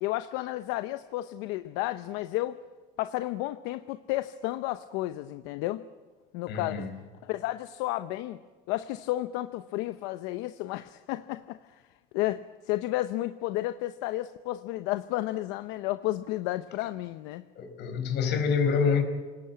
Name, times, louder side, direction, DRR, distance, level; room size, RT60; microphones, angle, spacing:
voice 1, 0.0-2.6 3.0-5.8 6.3-6.9 7.2-8.4 8.7-11.8 12.1-17.4, left 16 dB, 85° left, 11 dB, 0.8 m, -32 dB
voice 2, 6.5-6.9 17.5-19.0, left 6 dB, 65° left, 7 dB, 4.7 m, -26 dB
28.0 x 19.0 x 8.6 m, 1.3 s
cardioid pair, 110°, 19 cm